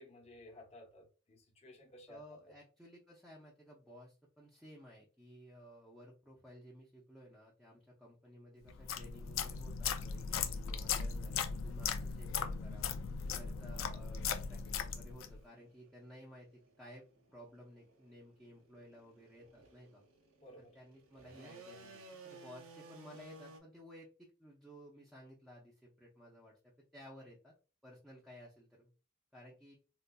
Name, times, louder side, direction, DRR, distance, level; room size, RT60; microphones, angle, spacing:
voice 1, 0.0-2.2 20.4-20.7, left 1 dB, 30° left, -2 dB, 0.9 m, -56 dB
voice 2, 2.1-12.9 13.3-16.5 16.8-20.0 20.6-27.5 27.8-28.9 29.3-29.7, equal, ahead, -5 dB, 0.6 m, -56 dB
sound 1, 8.7-15.4, left 6 dB, 70° left, 0.4 m, -38 dB
sound 2, 13.8-23.6, right 3 dB, 75° right, 0.6 m, -58 dB
3.9 x 2.5 x 2.2 m, 0.35 s
head